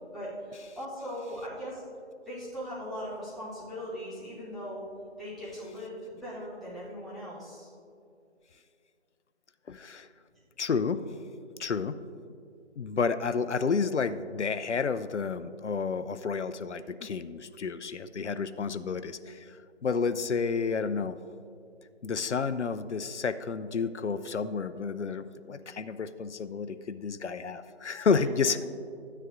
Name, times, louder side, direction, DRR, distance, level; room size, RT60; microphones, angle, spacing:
voice 1, 0.1-1.8 2.3-4.9 5.2-7.7 28.2-28.6, equal, ahead, -12 dB, 0.7 m, -39 dB
voice 2, 9.7-10.1 10.6-11.0 11.6-12.0 12.8-19.6 19.8-21.2 22.0-28.6, left 5 dB, 75° left, 13 dB, 0.5 m, -30 dB
13.5 x 9.8 x 2.6 m, 2.4 s
figure-of-eight pair, 175°, 35 cm